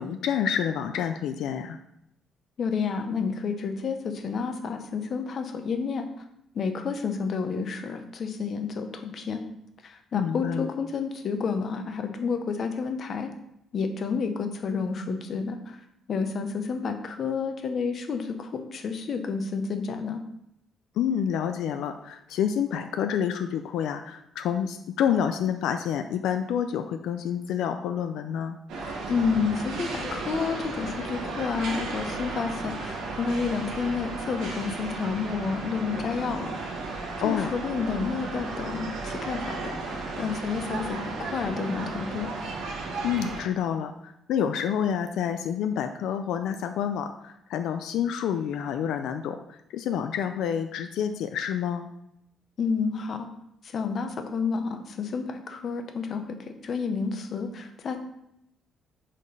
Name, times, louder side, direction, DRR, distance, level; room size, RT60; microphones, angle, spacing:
voice 1, 0.0-1.8 10.1-10.7 21.0-28.6 37.2-37.5 43.0-51.9, left 8 dB, 80° left, 7 dB, 0.4 m, -28 dB
voice 2, 2.6-6.1 6.5-9.4 9.8-13.3 13.7-20.2 29.1-36.8 37.2-42.3 52.6-53.3 53.6-58.0, left 5 dB, 40° left, 6 dB, 0.7 m, -30 dB
sound 1, 28.7-43.4, right 3 dB, 90° right, 1.4 m, -34 dB
5.1 x 4.1 x 5.5 m, 0.79 s
cardioid pair, 165°, 0 cm